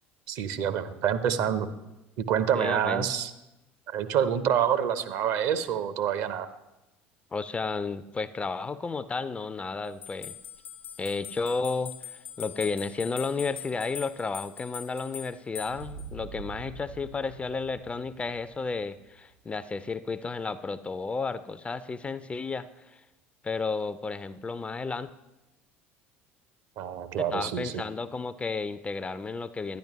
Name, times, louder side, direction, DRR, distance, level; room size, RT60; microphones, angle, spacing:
voice 1, 0.3-1.7 2.2-3.3 3.9-6.5 26.8-27.8, right 9 dB, 50° right, 12 dB, 0.6 m, -27 dB
voice 2, 2.5-3.1 7.3-10.3 11.0-23.0 23.4-25.1 27.3-29.8, left 4 dB, 20° left, 14 dB, 0.3 m, -32 dB
sound 1, 10.0-16.1, left 10 dB, 70° left, 0.9 m, -42 dB
sound 2, 15.6-20.2, right 5 dB, 85° right, 1.9 m, -46 dB
10.0 x 10.0 x 3.0 m, 0.98 s
figure-of-eight pair, 65°, 7 cm